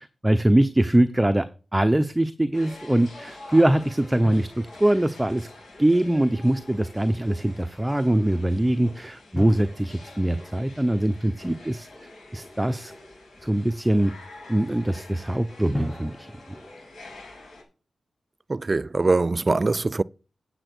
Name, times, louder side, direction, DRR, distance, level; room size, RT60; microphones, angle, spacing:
voice 1, 0.2-1.5 1.7-5.5 5.8-11.9 12.3-12.9 13.4-14.1 14.5-16.3, right 1 dB, 15° right, 0.9 m, -22 dB
sound 1, 2.5-17.6, left 2 dB, 65° left, 6.5 m, -46 dB
sound 2, 4.3-6.5 9.4-12.3 15.7-17.6, left 1 dB, 10° left, 2.7 m, -41 dB
voice 2, 18.5-20.0, right 3 dB, 45° right, 0.4 m, -22 dB
8.9 x 8.0 x 6.2 m
cardioid pair, 50°, 0 cm